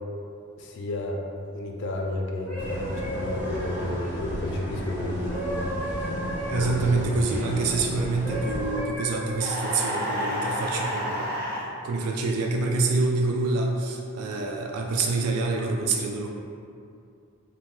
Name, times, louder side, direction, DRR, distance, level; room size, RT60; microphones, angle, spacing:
voice 1, 0.6-1.2 1.5-5.7 6.5-7.2, left 1 dB, 55° left, 0 dB, 0.3 m, -32 dB
sound 1, 2.2-7.8 8.2-11.1 11.8-12.0, equal, 25° right, 0.9 m, -36 dB
sound 2, 2.6-8.8, equal, 10° right, 0.5 m, -34 dB
voice 2, 6.5-11.3 11.8-16.3, right 3 dB, 90° right, 2 dB, 0.3 m, -26 dB
sound 3, 9.4-11.6, equal, 65° right, 1.1 m, -30 dB
2.8 x 2.1 x 3.0 m, 2.5 s
head